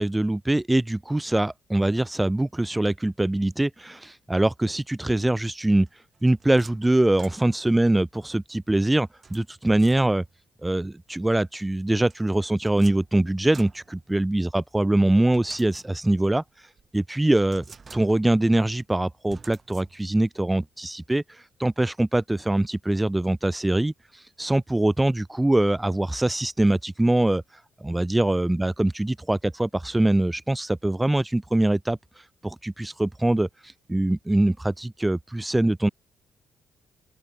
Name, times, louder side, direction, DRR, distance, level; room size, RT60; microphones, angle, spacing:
voice 1, 0.0-5.9 6.2-10.2 10.6-16.4 16.9-17.6 17.9-27.4 27.8-32.0 32.4-35.9, right 1 dB, 10° right, 0.8 m, -23 dB
sound 1, 5.9-7.8 9.2-10.4 12.1-14.6 15.3-16.3 16.8-16.9 17.4-18.5 19.3-20.3, right 5 dB, 35° right, 4.7 m, -49 dB
open air
cardioid pair, 90°, 0 cm